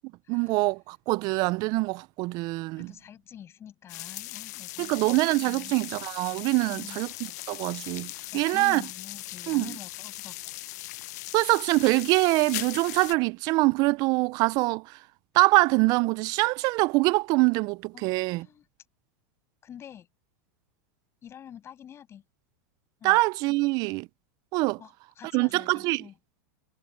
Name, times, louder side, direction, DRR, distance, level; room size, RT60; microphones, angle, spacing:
voice 1, 0.3-2.9 4.8-7.1 7.5-8.8 9.5-9.7 11.3-14.8 15.3-18.5 23.0-24.1 24.5-24.8 25.3-26.0, right 23 dB, 45° right, 0.5 m, -24 dB
voice 2, 2.8-5.0 5.5-5.7 6.6-7.1 8.1-10.6 17.9-18.7 19.6-20.1 21.2-22.2 23.0-23.2 24.8-26.1, left 9 dB, 25° left, 7.4 m, -47 dB
sound 1, 3.9-13.1, left 19 dB, 65° left, 0.7 m, -39 dB
supercardioid pair, 135°, 10 cm